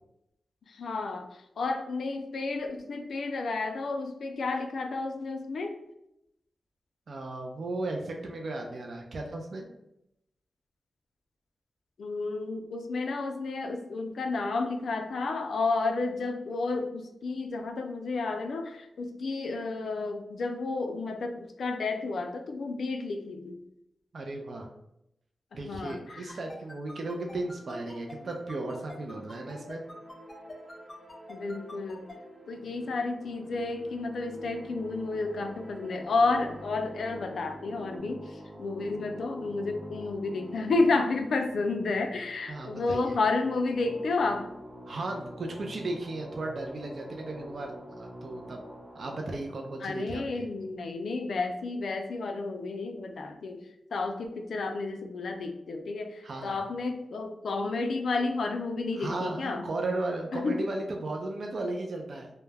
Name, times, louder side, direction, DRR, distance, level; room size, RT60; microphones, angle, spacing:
voice 1, 0.7-5.8 12.0-23.6 25.6-26.4 31.3-32.1 32.5-44.5 49.8-53.6 53.9-59.6 60.3-60.7, left 3 dB, 75° left, 5 dB, 0.3 m, -31 dB
voice 2, 7.1-9.6 24.1-24.7 25.5-29.8 42.5-43.1 44.9-48.6 48.9-50.5 56.2-56.6 58.9-62.3, right 2 dB, 55° right, 2 dB, 0.3 m, -35 dB
sound 1, 25.9-32.1, left 2 dB, 30° left, 0.6 m, -46 dB
sound 2, 26.8-38.0, right 1 dB, 85° right, 1.0 m, -50 dB
sound 3, 33.1-51.2, equal, 15° right, 0.6 m, -47 dB
2.2 x 2.0 x 3.2 m, 0.83 s
wide cardioid pair, 125°, 0 cm